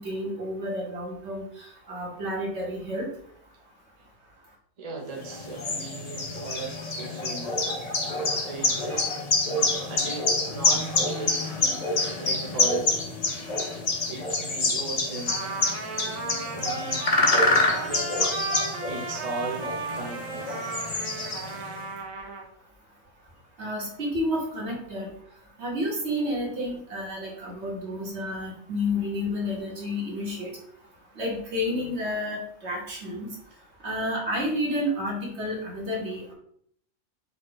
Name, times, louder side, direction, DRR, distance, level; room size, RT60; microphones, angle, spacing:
voice 1, 0.0-3.1 23.6-25.1 25.6-30.6 31.1-33.3 33.8-36.3, left 1 dB, 55° right, -2 dB, 1.4 m, -30 dB
voice 2, 4.8-7.6 8.3-9.1 9.6-10.9 11.2-11.9 12.2-13.1 14.1-15.4 16.5-18.3 18.9-20.5, right 3 dB, 35° right, 0 dB, 0.7 m, -37 dB
sound 1, 5.2-21.8, left 2 dB, 40° left, 0.6 m, -27 dB
Trumpet, 15.3-22.5, right 4 dB, 80° right, 1.3 m, -35 dB
4.9 x 2.4 x 3.9 m, 0.66 s
omnidirectional pair, 1.4 m